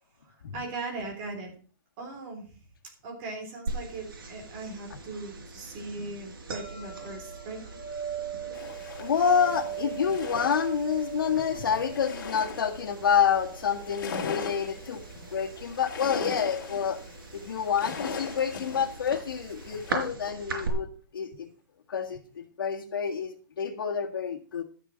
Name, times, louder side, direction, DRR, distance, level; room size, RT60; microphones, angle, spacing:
voice 1, 0.2-1.5 2.0-2.5 3.0-7.6, right 3 dB, 25° right, 2 dB, 3.5 m, -39 dB
sound 1, 3.7-20.7, right 5 dB, 70° right, 4.7 m, -39 dB
sound 2, 8.5-19.9, left 5 dB, 60° left, 3.0 m, -40 dB
voice 2, 9.0-15.0 15.3-17.0 17.3-20.9 21.1-21.5 21.9-24.6, left 7 dB, 80° left, -4 dB, 1.8 m, -28 dB
12.5 x 6.8 x 6.3 m, 0.40 s
hypercardioid pair, 175°, 12 cm